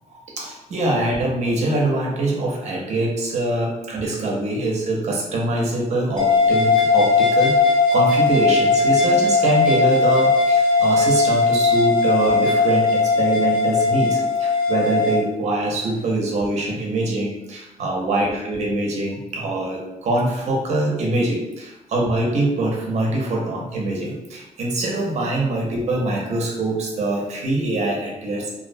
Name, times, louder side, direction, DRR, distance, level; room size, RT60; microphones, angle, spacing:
voice 1, 0.4-28.5, right 2 dB, 60° right, -1 dB, 0.6 m, -23 dB
sound 1, 6.2-15.2, left 3 dB, 40° left, 0.5 m, -18 dB
2.4 x 2.0 x 2.5 m, 0.93 s
wide cardioid pair, 160°, 13 cm